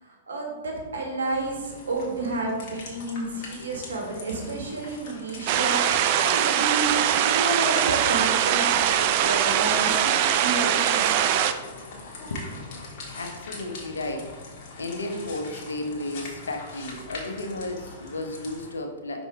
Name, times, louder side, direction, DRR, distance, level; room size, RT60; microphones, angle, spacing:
voice 1, 0.0-11.3, right 2 dB, 80° right, 1 dB, 1.5 m, -30 dB
sound 1, 1.3-18.7, left 3 dB, 50° left, 1.7 m, -42 dB
sound 2, 5.5-11.5, right 10 dB, 50° right, 0.4 m, -22 dB
voice 2, 13.1-14.3 14.8-19.3, left 2 dB, 85° left, 4 dB, 0.9 m, -33 dB
5.7 x 4.2 x 4.5 m, 1.3 s
hypercardioid pair, 115°, 0 cm